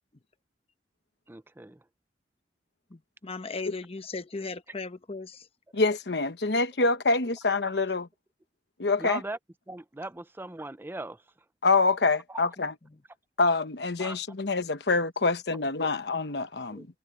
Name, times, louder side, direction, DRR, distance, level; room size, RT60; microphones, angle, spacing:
voice 1, 1.3-1.8 9.0-9.4 9.7-11.2 12.3-12.4 14.0-14.2 16.7-16.9, right 2 dB, 15° right, 0.5 m, -39 dB
voice 2, 2.9-5.4, left 3 dB, 35° left, 1.0 m, -37 dB
voice 3, 5.7-8.1 8.8-9.2 11.6-12.7 13.4-16.9, left 3 dB, 70° left, 1.1 m, -26 dB
head